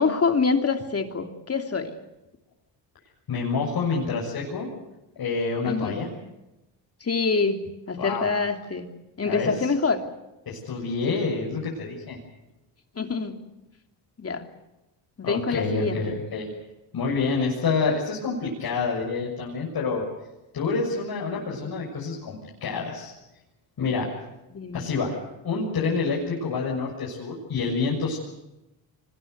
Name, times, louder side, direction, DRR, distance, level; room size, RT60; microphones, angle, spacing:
voice 1, 0.0-2.0 5.6-6.0 7.0-7.6 7.9-8.9 9.2-10.0 11.1-11.2 12.9-13.4 14.2-14.4 15.2-16.1 24.5-24.9, left 4 dB, 30° left, 6 dB, 3.0 m, -25 dB
voice 2, 3.3-4.7 5.2-6.1 8.0-8.3 9.3-9.7 10.5-12.2 15.2-16.5 16.9-20.0 20.5-23.1 23.8-24.1 24.7-25.2 25.4-28.2, left 4 dB, 55° left, -3 dB, 6.9 m, -27 dB
25.0 x 20.5 x 8.1 m, 0.95 s
cardioid pair, 95°, 44 cm